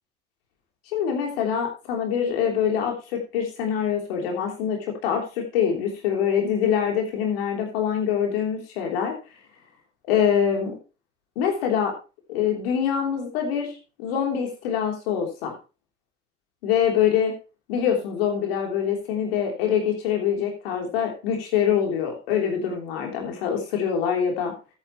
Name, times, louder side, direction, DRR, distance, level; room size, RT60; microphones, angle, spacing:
voice 1, 0.9-9.1 10.1-10.7 11.3-11.9 12.3-13.7 14.0-15.5 16.6-17.3 17.7-24.5, left 8 dB, 90° left, 2 dB, 3.4 m, -24 dB
13.0 x 9.8 x 3.1 m, 0.31 s
hypercardioid pair, 55°, 29 cm